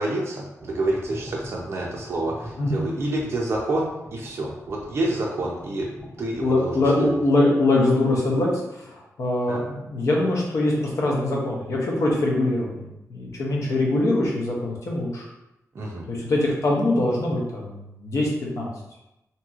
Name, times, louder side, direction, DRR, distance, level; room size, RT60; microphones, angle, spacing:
voice 1, 0.0-7.1 9.5-9.6 15.7-16.1, right 2 dB, 50° right, -2 dB, 0.4 m, -28 dB
sound 1, 0.6-6.7, equal, 10° left, 0.6 m, -43 dB
voice 2, 6.4-15.3 16.1-18.3 18.5-18.7, left 2 dB, 65° left, -2 dB, 0.7 m, -23 dB
2.9 x 2.7 x 2.3 m, 0.91 s
wide cardioid pair, 125°, 6 cm